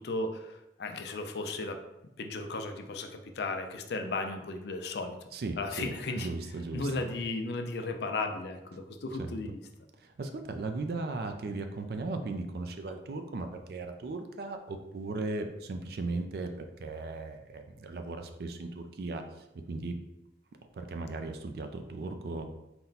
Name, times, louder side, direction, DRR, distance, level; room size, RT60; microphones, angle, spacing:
voice 1, 0.0-1.8 2.2-5.2 5.6-6.3 6.7-9.6, left 2 dB, 65° left, 6 dB, 0.4 m, -35 dB
voice 2, 5.3-7.0 9.2-9.3 10.2-16.5 16.8-19.2 19.7-20.0 20.7-22.4, right 3 dB, 55° right, 6 dB, 0.4 m, -37 dB
4.2 x 2.2 x 3.9 m, 0.92 s
head